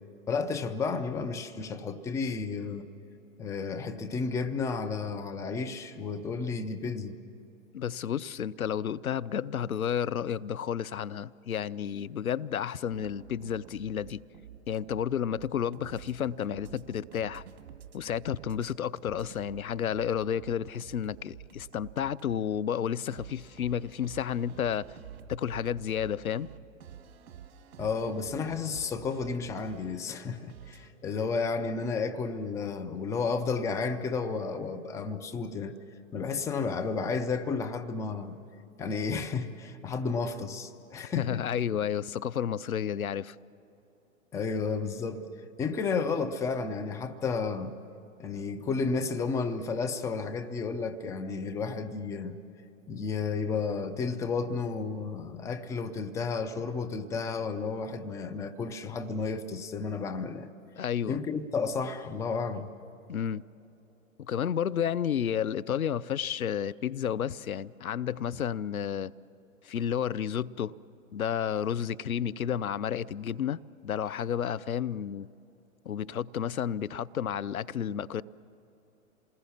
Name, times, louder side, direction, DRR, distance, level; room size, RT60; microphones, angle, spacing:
voice 1, 0.3-2.9 3.4-7.2 27.8-35.7 36.1-38.4 38.8-41.4 44.3-45.3 45.6-47.7 48.2-52.4 52.9-60.5 61.1-62.7, left 4 dB, 5° left, 0.6 m, -32 dB
voice 2, 7.7-14.2 14.7-17.4 17.9-24.8 25.3-26.5 41.2-43.4 60.8-61.2 63.1-63.4 64.2-69.1 69.6-70.7 71.1-75.3 75.9-78.2, left 9 dB, 85° left, 0.7 m, -31 dB
sound 1, 12.9-18.7 19.0-22.4 23.1-30.9, right 9 dB, 50° right, 2.1 m, -49 dB
28.0 x 20.0 x 7.3 m
hypercardioid pair, 120°, 41 cm